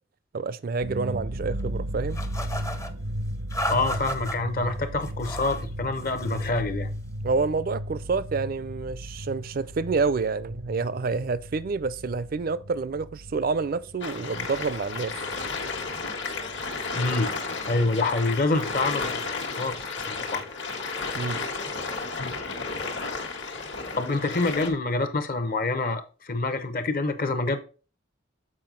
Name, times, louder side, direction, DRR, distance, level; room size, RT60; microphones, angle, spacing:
voice 1, 0.3-2.2 7.2-15.1 21.1-21.4, right 4 dB, 50° right, 0.4 m, -28 dB
sound 1, 0.8-15.9 16.2-17.3 17.6-17.7 18.1-18.7, equal, 85° right, 0.8 m, -36 dB
sound 2, 2.1-2.9 3.5-4.4 5.0-5.6 6.0-6.6, equal, 15° left, 0.5 m, -34 dB
voice 2, 3.7-6.9 16.9-17.3 17.7-19.2 19.6-20.4 22.2-22.3 23.9-27.6, left 2 dB, 45° left, 0.8 m, -26 dB
sound 3, 14.0-24.7, left 4 dB, 65° left, 1.3 m, -33 dB
7.6 x 4.7 x 3.8 m
head